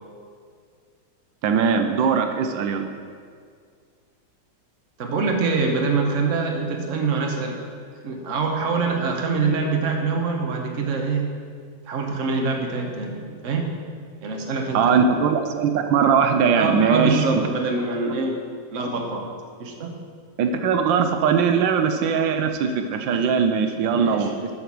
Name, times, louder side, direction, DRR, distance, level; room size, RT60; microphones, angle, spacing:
voice 1, 1.4-2.8 14.7-17.4 20.4-24.5, right 6 dB, 85° right, 6 dB, 1.4 m, -20 dB
voice 2, 5.0-7.6 8.0-11.3 11.9-13.8 14.2-15.0 16.6-18.4 18.7-19.3 19.6-20.0 23.1-23.2 23.9-24.3, right 4 dB, 50° right, 2 dB, 1.2 m, -25 dB
8.2 x 6.6 x 6.0 m, 2.1 s
omnidirectional pair, 2.0 m